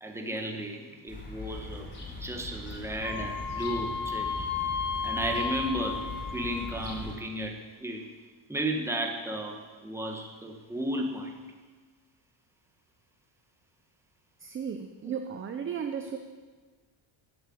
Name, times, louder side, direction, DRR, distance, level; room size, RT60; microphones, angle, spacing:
voice 1, 0.0-1.9 2.2-4.5 5.0-8.0 8.5-11.3 15.0-15.1, right 1 dB, 5° right, 1 dB, 1.5 m, -34 dB
sound 1, 1.1-7.1, left 2 dB, 20° left, 3.9 m, -41 dB
Wind instrument woodwind instrument, 3.0-6.9, left 6 dB, 80° left, 5.4 m, -34 dB
voice 2, 14.4-16.2, right 7 dB, 25° right, 6 dB, 0.7 m, -35 dB
15.0 x 8.0 x 9.4 m, 1.4 s
cardioid pair, 175°, 49 cm